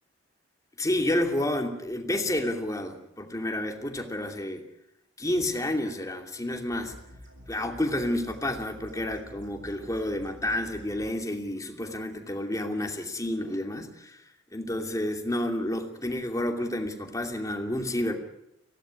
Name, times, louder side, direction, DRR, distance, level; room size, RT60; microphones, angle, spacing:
voice 1, 0.8-4.6 5.2-6.9 7.5-14.2 14.5-18.2, left 1 dB, 15° left, 4 dB, 2.7 m, -30 dB
sound 1, 6.7-11.1, equal, 75° right, 7.3 m, -48 dB
23.5 x 17.5 x 9.8 m, 0.85 s
head